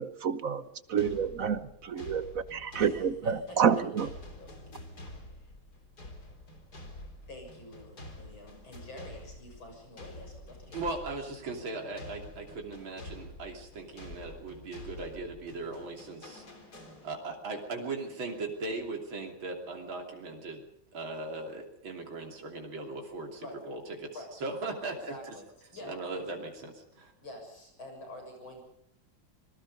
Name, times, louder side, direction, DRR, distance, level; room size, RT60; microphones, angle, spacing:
voice 1, 0.0-4.1, right 7 dB, 50° right, 13 dB, 1.2 m, -29 dB
sound 1, 1.0-17.4, left 1 dB, 50° left, 4.1 m, -48 dB
voice 2, 2.8-3.8 4.2-4.5 5.0-5.5 7.3-11.1 23.4-23.6 24.1-24.3 25.1-25.5 25.7-26.2 27.2-28.7, left 1 dB, 80° left, 3 dB, 7.8 m, -47 dB
voice 3, 10.7-16.4 17.0-20.7 20.9-24.2 24.4-25.1 25.9-27.1, right 3 dB, 75° right, 2 dB, 3.8 m, -38 dB
26.0 x 20.5 x 5.4 m, 0.76 s
omnidirectional pair, 2.2 m